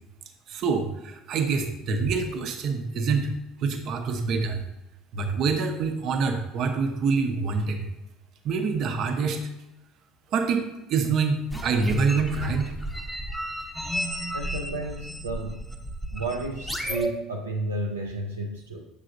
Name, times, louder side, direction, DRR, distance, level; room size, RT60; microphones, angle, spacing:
voice 1, 0.5-3.3 3.6-4.6 5.1-7.8 8.4-9.4 10.3-12.7, right 4 dB, 50° right, 5 dB, 0.7 m, -26 dB
sound 1, 11.5-17.1, equal, 5° left, 0.7 m, -33 dB
voice 2, 14.3-15.7 16.1-18.9, right 2 dB, 85° right, 0 dB, 0.5 m, -32 dB
6.6 x 5.6 x 2.6 m, 0.93 s
figure-of-eight pair, 60°, 0 cm